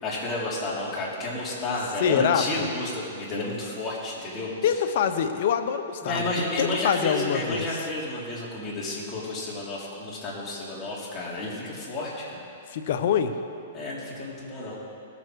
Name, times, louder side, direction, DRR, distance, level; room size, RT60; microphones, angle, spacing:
voice 1, 0.0-4.5 6.0-12.4 13.7-14.8, left 2 dB, 25° left, -6 dB, 3.3 m, -31 dB
voice 2, 2.0-2.7 4.6-6.3 6.6-7.7 12.7-13.3, left 8 dB, 60° left, 8 dB, 0.8 m, -25 dB
17.5 x 7.1 x 4.7 m, 2.6 s
hypercardioid pair, 130°, 0 cm